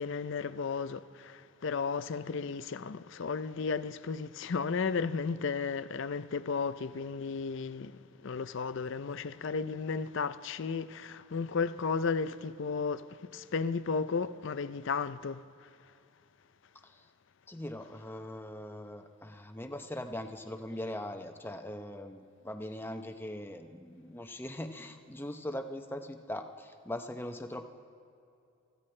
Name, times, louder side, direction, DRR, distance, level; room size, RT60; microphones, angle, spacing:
voice 1, 0.0-7.9 8.2-13.0 13.3-15.4, left 5 dB, 55° left, 0.5 m, -34 dB
voice 2, 17.5-27.7, left 1 dB, 10° left, 0.7 m, -41 dB
29.0 x 15.0 x 3.3 m
head